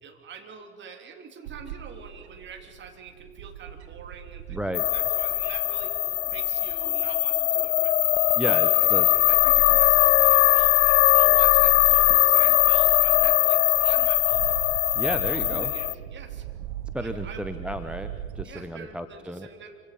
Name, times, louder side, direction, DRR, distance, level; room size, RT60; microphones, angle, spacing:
voice 1, 0.0-8.0 8.5-14.7 15.3-16.4 17.0-17.4 18.4-19.8, right 6 dB, 30° right, 4 dB, 3.0 m, -45 dB
Bird / Wind, 1.4-18.4, right 10 dB, 60° right, 1.1 m, -42 dB
voice 2, 4.5-4.8 8.4-9.1 14.9-15.7 16.9-19.5, right 1 dB, 5° right, 8 dB, 0.8 m, -32 dB
sound 1, 4.7-15.9, left 14 dB, 65° left, 0.5 m, -20 dB
27.0 x 25.5 x 5.6 m, 2.1 s
figure-of-eight pair, 80°, 38 cm